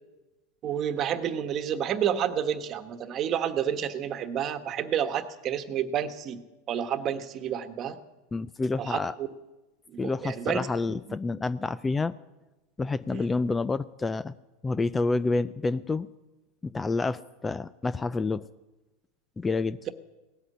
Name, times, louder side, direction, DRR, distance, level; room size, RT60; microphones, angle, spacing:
voice 1, 0.6-6.4 6.7-8.0 8.8-9.3 9.9-10.7 13.1-13.3, right 9 dB, 40° right, 10 dB, 1.3 m, -30 dB
voice 2, 8.3-9.1 10.0-12.1 12.8-14.3 14.6-16.1 16.6-18.5 19.4-19.8, left 3 dB, 15° left, 17 dB, 0.4 m, -28 dB
18.0 x 8.1 x 10.0 m, 1.1 s
hypercardioid pair, 110°, 0 cm